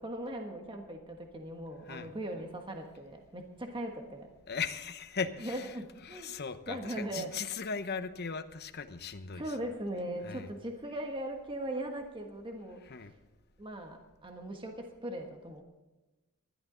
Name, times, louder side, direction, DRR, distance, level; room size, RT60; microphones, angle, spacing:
voice 1, 0.0-4.3 5.4-6.4 6.7-7.3 9.3-12.8 13.6-15.6, right 1 dB, 25° right, 3 dB, 1.4 m, -39 dB
voice 2, 4.5-5.7 6.1-9.4 10.2-10.5 12.9-13.1, left 5 dB, 50° left, 9 dB, 0.9 m, -38 dB
19.5 x 12.5 x 3.9 m, 1.1 s
head